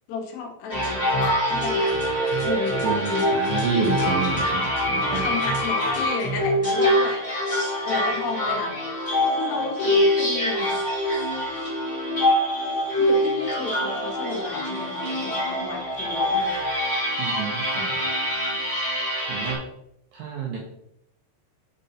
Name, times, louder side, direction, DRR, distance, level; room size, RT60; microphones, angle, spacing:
voice 1, 0.1-3.0 4.0-4.4 4.9-7.2 7.8-8.8 9.3-10.8 13.0-16.6, left 5 dB, 70° left, 1 dB, 3.2 m, -33 dB
sound 1, 0.7-19.5, equal, 15° left, 1.2 m, -24 dB
voice 2, 2.8-5.3 17.2-18.1 19.3-19.6 20.1-20.6, right 6 dB, 75° right, -2 dB, 2.1 m, -29 dB
6.7 x 5.3 x 4.2 m, 0.79 s
omnidirectional pair, 5.4 m